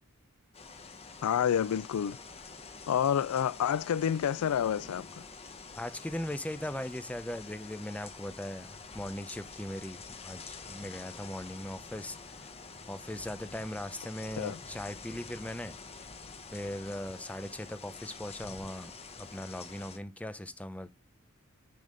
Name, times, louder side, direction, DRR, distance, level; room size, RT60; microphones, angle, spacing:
sound 1, 0.5-20.0, left 4 dB, 30° left, 0.9 m, -47 dB
voice 1, 1.2-2.2 2.9-5.2 14.4-14.6, left 9 dB, 85° left, 0.3 m, -29 dB
voice 2, 5.7-12.5 12.9-15.8 16.5-20.9, left 1 dB, 5° left, 0.6 m, -39 dB
9.4 x 4.0 x 5.1 m
head